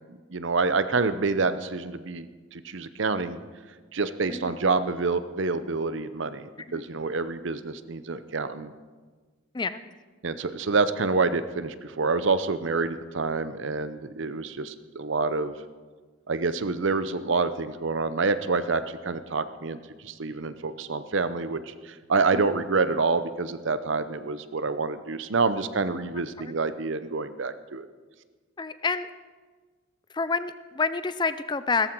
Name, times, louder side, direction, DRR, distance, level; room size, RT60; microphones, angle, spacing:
voice 1, 0.1-3.4 3.9-8.7 10.2-15.6 16.3-19.8 20.0-27.9, right 4 dB, 65° right, 13 dB, 0.7 m, -27 dB
voice 2, 28.6-29.1 30.1-31.9, left 4 dB, 20° left, 13 dB, 0.4 m, -28 dB
16.5 x 14.0 x 4.6 m, 1.4 s
head